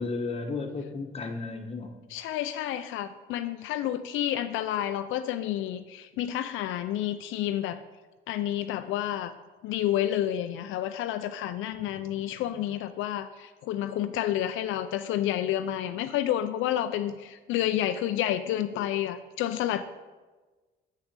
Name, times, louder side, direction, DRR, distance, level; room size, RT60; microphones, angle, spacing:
voice 1, 0.0-1.9 11.7-11.9, left 3 dB, 30° left, 3 dB, 1.2 m, -33 dB
voice 2, 2.1-7.8 8.3-9.3 9.6-19.8, left 12 dB, 90° left, 9 dB, 0.4 m, -30 dB
6.5 x 6.0 x 6.6 m, 1.3 s
cardioid pair, 90°, 20 cm